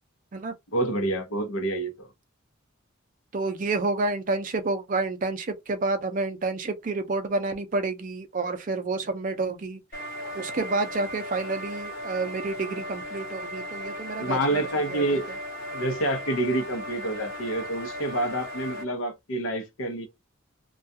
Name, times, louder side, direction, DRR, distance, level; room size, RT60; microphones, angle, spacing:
voice 1, 0.7-2.1 14.2-15.3 15.7-20.1, right 1 dB, 85° left, 0.8 m, -28 dB
voice 2, 3.3-9.8 10.3-14.6 14.9-15.2, right 3 dB, 40° right, 0.4 m, -29 dB
sound 1, 9.9-18.8, equal, 45° left, 1.1 m, -37 dB
2.3 x 2.3 x 2.6 m
head